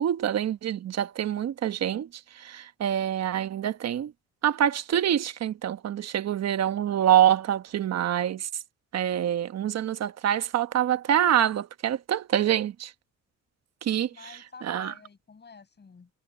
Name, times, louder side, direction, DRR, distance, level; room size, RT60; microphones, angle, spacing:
voice 1, 0.0-2.1 2.4-4.1 4.4-8.5 8.9-12.9 13.8-14.9, right 10 dB, 60° right, 1.1 m, -26 dB
voice 2, 14.0-16.1, left 5 dB, 35° left, 6.4 m, -49 dB
cardioid pair, 90°, 30 cm